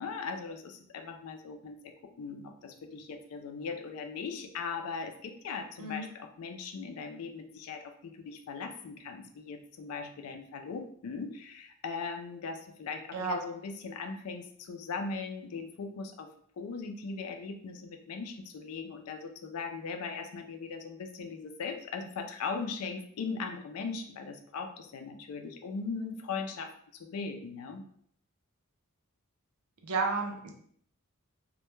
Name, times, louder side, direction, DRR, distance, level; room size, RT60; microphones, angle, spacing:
voice 1, 0.0-16.3 16.6-27.9, left 4 dB, 75° left, 6 dB, 0.4 m, -39 dB
voice 2, 29.8-30.5, right 4 dB, 90° right, 2 dB, 0.5 m, -31 dB
2.2 x 2.1 x 3.0 m, 0.64 s
head